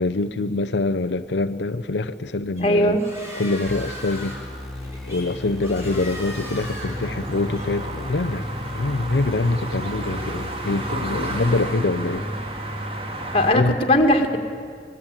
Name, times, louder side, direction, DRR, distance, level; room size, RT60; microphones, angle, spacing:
voice 1, 0.0-3.0 3.3-4.4 5.1-8.5 8.7-12.3 13.5-13.8, left 2 dB, 85° left, 10 dB, 0.7 m, -24 dB
voice 2, 2.6-3.0 13.3-14.4, left 1 dB, 30° left, 4 dB, 2.1 m, -18 dB
sound 1, 2.6-7.7, equal, 15° right, 5.7 m, -39 dB
sound 2, 3.7-11.7, left 1 dB, ahead, 4.0 m, -36 dB
sound 3, 6.1-13.6, right 1 dB, 30° right, 2.1 m, -31 dB
25.5 x 21.0 x 9.0 m, 2.2 s
head